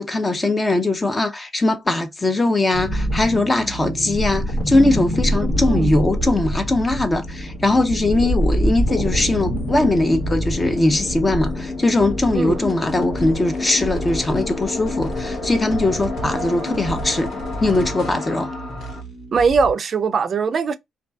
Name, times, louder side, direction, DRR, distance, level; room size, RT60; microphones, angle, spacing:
voice 1, 0.0-17.3 17.6-18.5, left 2 dB, 25° left, 0.5 m, -20 dB
sound 1, 2.7-19.7, right 1 dB, 80° left, 1.3 m, -27 dB
sound 2, 4.0-19.0, left 3 dB, 60° left, 1.1 m, -32 dB
voice 2, 5.6-5.9 12.3-12.6 16.2-16.8 19.3-20.8, right 5 dB, 50° right, 0.4 m, -21 dB
2.5 x 2.3 x 2.3 m
cardioid pair, 90°, 0 cm